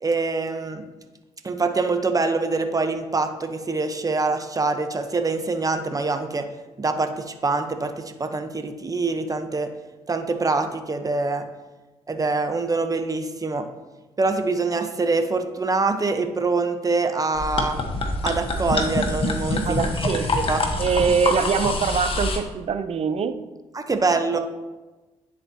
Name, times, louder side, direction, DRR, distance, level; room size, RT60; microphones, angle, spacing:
voice 1, 0.0-0.9 1.4-6.5 6.8-9.7 10.1-11.4 12.1-13.7 14.2-17.8 18.2-20.1 20.5-20.6 23.7-24.4, right 3 dB, 25° right, 7 dB, 0.9 m, -24 dB
sound 1, 17.4-22.4, left 2 dB, 45° left, 1.2 m, -25 dB
voice 2, 19.7-20.5 20.8-23.4 24.3-24.4, right 6 dB, 50° right, 11 dB, 0.6 m, -23 dB
10.0 x 4.2 x 2.8 m, 1.1 s
hypercardioid pair, 50°, 13 cm